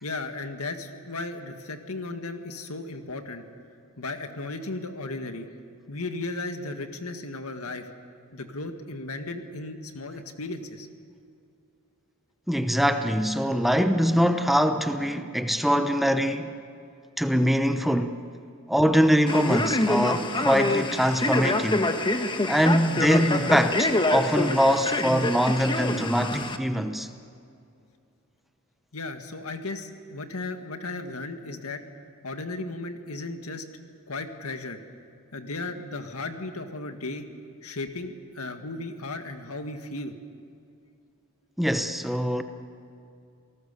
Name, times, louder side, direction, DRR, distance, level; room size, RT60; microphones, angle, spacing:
voice 1, 0.0-3.4 4.0-5.5 5.9-7.9 8.3-10.9 28.9-31.8 32.2-33.6 34.1-34.8 35.3-37.3 37.6-40.1, left 2 dB, 85° left, 1.9 m, -35 dB
voice 2, 12.5-16.6 17.2-18.2 18.7-21.9 22.5-27.1 41.6-42.4, equal, ahead, 0.9 m, -23 dB
Male speech man speaking, 19.3-26.6, left 2 dB, 20° left, 1.3 m, -26 dB
28.0 x 19.0 x 6.9 m
head